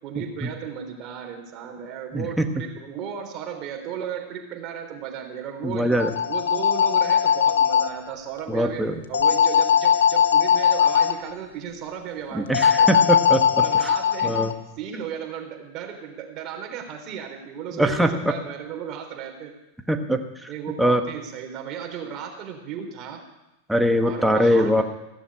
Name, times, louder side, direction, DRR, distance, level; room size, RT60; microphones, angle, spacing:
voice 1, 0.0-6.0 6.3-12.9 13.6-14.4 14.8-19.6 20.5-23.2 24.0-24.8, right 8 dB, 40° right, 3 dB, 3.5 m, -35 dB
voice 2, 2.1-2.5 5.6-6.1 8.5-8.9 12.3-13.4 14.2-14.5 17.7-18.3 19.9-20.2 20.8-21.0 23.7-24.8, equal, 5° right, 5 dB, 1.4 m, -21 dB
sound 1, 5.9-7.9 9.1-11.1 12.5-14.5, left 8 dB, 85° left, 1.0 m, -19 dB
16.0 x 7.1 x 9.8 m, 0.95 s
hypercardioid pair, 115°, 0 cm